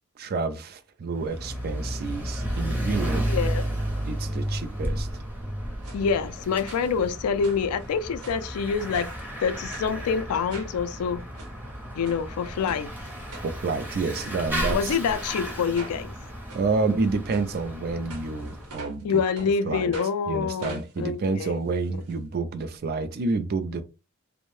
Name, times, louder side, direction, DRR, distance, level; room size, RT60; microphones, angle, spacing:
voice 1, 0.2-3.3 4.0-5.1 13.4-15.0 16.5-19.2 19.6-19.9 20.3-23.8, right 4 dB, 45° right, 0.4 m, -29 dB
Bicycle / Mechanisms, 1.1-18.7, equal, 10° right, 0.6 m, -33 dB
voice 2, 3.3-3.6 5.9-9.1 9.4-11.2 12.0-12.9 14.7-16.1 19.0-21.5, left 6 dB, 90° left, 0.3 m, -26 dB
Ice Crash, 5.8-6.0 6.7-7.1 7.4-8.5 8.9-9.3 9.7-9.9 10.5-10.8 11.2-11.5 12.0-12.2 12.7-12.8 13.3-13.8 14.1-14.3 14.9-15.0 15.7-16.0 16.5-16.6 17.2-17.4 18.1-19.0 19.3-19.5 19.9-20.1 20.6-22.1 22.4-22.5 22.8-22.9, right 3 dB, 90° right, 0.9 m, -44 dB
2.6 x 2.0 x 3.0 m
head